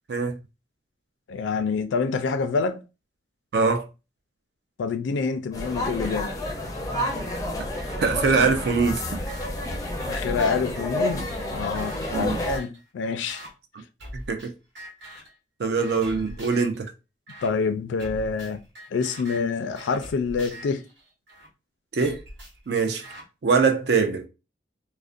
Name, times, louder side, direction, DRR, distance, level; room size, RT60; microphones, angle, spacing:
voice 1, 1.3-2.8 4.8-6.3 10.1-13.4 17.4-18.6 18.9-20.8, left 5 dB, 80° left, 0.3 m, -27 dB
voice 2, 3.5-3.9 8.0-9.2 12.1-12.4 14.3-14.5 15.6-16.9 21.9-22.2 22.7-23.0 23.4-24.3, right 4 dB, 60° right, 0.4 m, -23 dB
sound 1, 5.5-12.6, left 1 dB, 20° left, 0.4 m, -30 dB
sound 2, 7.3-7.4 7.8-9.5 10.0-12.8 13.3-13.5 14.0-14.5 14.8-15.3 15.8-16.8 17.3-17.5 18.0-21.5 22.0-23.2, right 1 dB, 85° right, 1.2 m, -43 dB
2.4 x 2.1 x 2.4 m
head